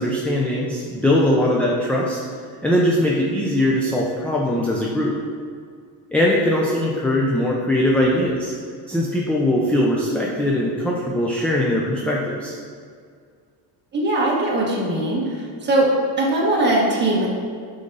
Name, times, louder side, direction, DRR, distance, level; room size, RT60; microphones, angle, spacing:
voice 1, 0.0-2.2 2.6-5.1 6.1-8.5 8.9-12.5, left 1 dB, 5° left, -4 dB, 0.4 m, -21 dB
voice 2, 13.9-15.9 16.2-17.3, right 1 dB, 25° right, -4 dB, 1.5 m, -20 dB
6.7 x 3.9 x 5.4 m, 2.1 s
cardioid pair, 145°, 46 cm